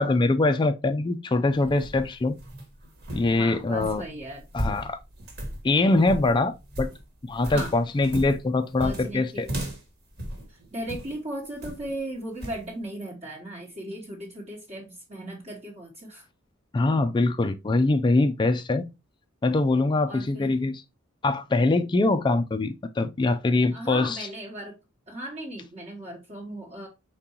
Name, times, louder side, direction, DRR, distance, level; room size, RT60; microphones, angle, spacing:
voice 1, 0.0-2.4 3.1-4.0 4.5-5.0 5.6-6.9 7.2-9.5 16.7-18.9 19.4-20.8 21.2-24.2, left 2 dB, 20° left, 0.3 m, -23 dB
sound 1, 1.5-11.2 11.6-12.0 12.4-12.6, right 1 dB, 50° right, 1.3 m, -36 dB
voice 2, 3.4-4.4 7.5-7.7 8.8-9.6 10.5-16.3 20.1-20.5 23.7-24.8 25.1-26.9, right 1 dB, 30° right, 1.0 m, -37 dB
4.6 x 3.7 x 2.8 m
head